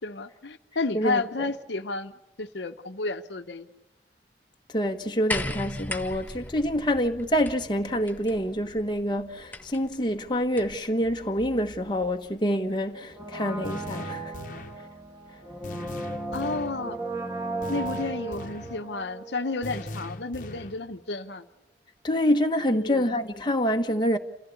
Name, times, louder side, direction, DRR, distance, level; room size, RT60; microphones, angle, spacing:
voice 1, 0.0-3.7 16.3-17.0 17.7-21.4 22.7-23.0, left 3 dB, 75° left, 1.0 m, -32 dB
voice 2, 0.9-1.5 4.7-14.4 22.0-24.2, equal, 25° left, 1.2 m, -26 dB
sound 1, 5.3-10.9 12.0-12.1, left 2 dB, 10° left, 1.0 m, -38 dB
Brass instrument, 13.1-20.0 20.2-20.3, right 2 dB, 15° right, 1.8 m, -36 dB
sound 2, 13.6-14.8 15.6-16.8 17.6-18.8 19.6-20.8, left 2 dB, 45° left, 1.3 m, -40 dB
28.5 x 15.5 x 8.4 m
head